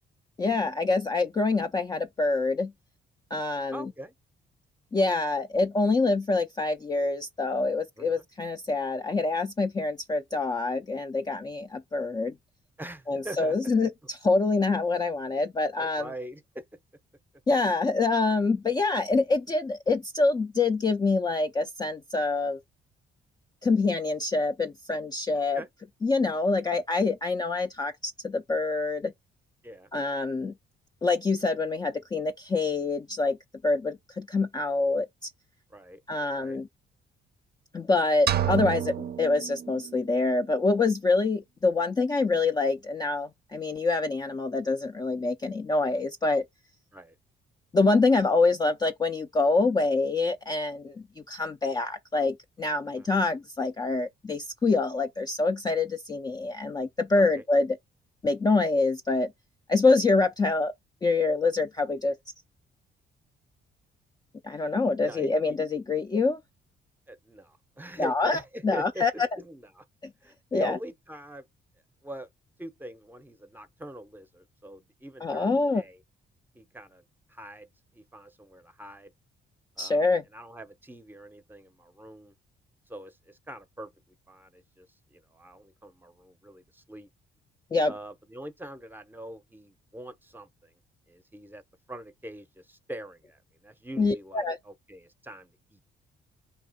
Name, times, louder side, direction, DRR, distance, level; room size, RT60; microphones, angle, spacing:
voice 1, 0.4-2.7 3.3-3.9 4.9-12.3 13.1-16.1 17.5-22.6 23.6-25.6 26.0-29.1 29.9-30.5 31.0-33.4 33.6-35.3 36.1-36.7 37.7-46.4 47.7-57.8 58.2-59.3 59.7-60.7 61.0-62.2 64.4-66.4 68.0-69.1 70.5-70.8 75.2-75.8 79.8-80.2 87.7-87.9 94.0-94.6, left 3 dB, 20° left, 0.4 m, -26 dB
voice 2, 3.7-4.1 8.0-8.2 12.8-13.5 13.8-13.9 15.8-16.6 25.3-25.7 29.6-29.9 35.7-36.0 36.4-36.6 46.9-47.2 53.0-53.1 57.1-57.4 65.0-65.6 67.1-69.8 70.2-71.5 72.0-72.3 72.6-76.0 76.5-77.0 77.3-79.1 79.8-82.3 82.9-83.9 84.3-87.1 87.9-90.7 91.1-91.6 91.9-95.8, right 1 dB, 10° right, 0.7 m, -43 dB
sound 1, 38.3-40.2, right 10 dB, 50° right, 0.5 m, -30 dB
4.2 x 2.8 x 4.0 m
cardioid pair, 90°, 20 cm